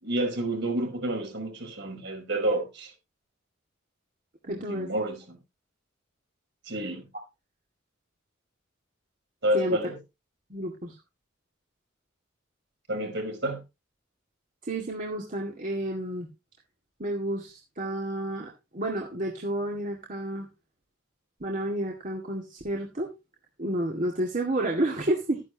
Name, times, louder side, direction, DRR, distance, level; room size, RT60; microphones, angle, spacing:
voice 1, 0.0-2.9 4.5-5.4 6.6-7.1 9.4-9.9 12.9-13.6, right 1 dB, 60° right, 4.9 m, -29 dB
voice 2, 4.5-4.9 9.5-9.8 10.5-11.0 14.6-16.3 17.0-20.5 21.4-23.1 23.6-25.4, right 1 dB, 40° right, 2.1 m, -30 dB
13.5 x 10.5 x 2.9 m
head